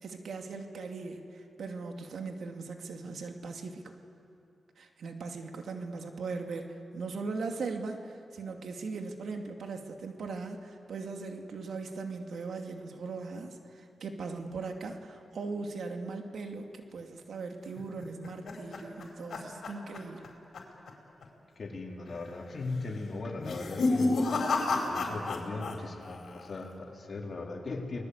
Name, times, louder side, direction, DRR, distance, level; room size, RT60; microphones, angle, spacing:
voice 1, 0.0-3.9 4.8-20.3, right 4 dB, 75° right, 4 dB, 2.4 m, -39 dB
sound 1, 17.8-20.3 20.5-20.9 21.2-21.3 22.1-22.5 23.3-25.8 26.0-26.6, left 3 dB, 70° left, 4.7 m, -31 dB
voice 2, 21.6-28.0, left 3 dB, 55° left, 0 dB, 4.1 m, -38 dB
30.0 x 21.0 x 8.3 m, 2.6 s
cardioid pair, 65°, 0 cm